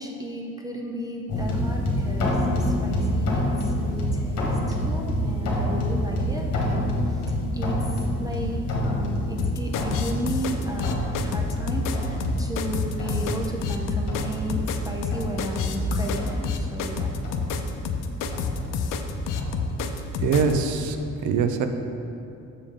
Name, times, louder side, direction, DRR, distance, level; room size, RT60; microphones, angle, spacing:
voice 1, 0.0-17.2, right 1 dB, 10° right, 0 dB, 0.4 m, -34 dB
sound 1, 1.3-20.9, left 1 dB, 50° left, 1.3 m, -28 dB
sound 2, 9.4-20.5, left 6 dB, 85° left, 0.6 m, -29 dB
voice 2, 20.2-21.7, right 5 dB, 65° right, 7 dB, 0.6 m, -23 dB
7.1 x 6.8 x 3.6 m, 2.7 s
cardioid pair, 175°, 32 cm